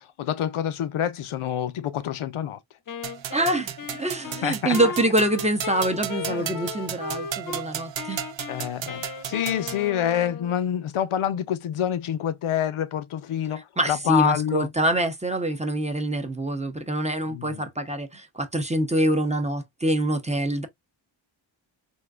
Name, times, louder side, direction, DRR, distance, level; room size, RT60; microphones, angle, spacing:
voice 1, 0.0-2.6 4.4-4.8 6.3-6.5 8.5-14.7 17.3-17.7, left 10 dB, 85° left, 0.6 m, -27 dB
Wind instrument woodwind instrument, 2.9-7.7 8.0-10.6, left 6 dB, 45° left, 0.6 m, -36 dB
sound 1, 3.0-9.9, right 10 dB, 65° right, 0.6 m, -35 dB
voice 2, 3.3-8.2 13.8-20.7, right 1 dB, 15° right, 0.6 m, -25 dB
3.7 x 2.5 x 2.3 m
wide cardioid pair, 100°, 49 cm